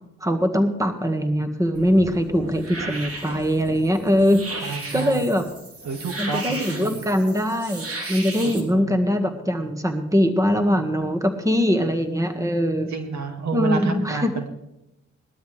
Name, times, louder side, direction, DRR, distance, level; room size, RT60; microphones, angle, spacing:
voice 1, 0.2-5.4 6.2-12.9 13.5-14.3, equal, 10° right, 7 dB, 1.7 m, -22 dB
sound 1, 1.7-8.6, right 2 dB, 50° right, 3.2 m, -35 dB
voice 2, 4.6-5.3 5.9-7.0 8.4-9.0 12.9-14.5, right 4 dB, 65° right, 5 dB, 2.2 m, -30 dB
19.5 x 12.5 x 3.4 m, 0.89 s
supercardioid pair, 55°, 30 cm